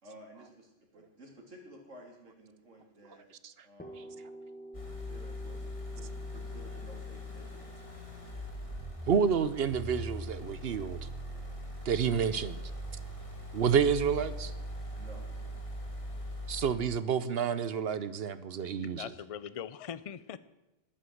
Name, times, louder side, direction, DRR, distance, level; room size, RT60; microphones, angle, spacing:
voice 1, 0.0-3.3 3.6-4.2 5.0-7.8 14.9-15.3, right 1 dB, 85° right, 0 dB, 3.4 m, -53 dB
sound 1, 3.8-11.5, right 1 dB, 10° left, 1.3 m, -51 dB
sound 2, 4.7-16.7, left 1 dB, 25° left, 1.9 m, -41 dB
voice 2, 9.1-11.0 11.8-12.6 13.5-14.5 16.5-19.1, right 7 dB, 60° right, 15 dB, 0.9 m, -29 dB
voice 3, 18.6-20.4, left 8 dB, 45° left, 16 dB, 0.5 m, -42 dB
11.5 x 10.0 x 7.8 m, 0.98 s
omnidirectional pair, 1.2 m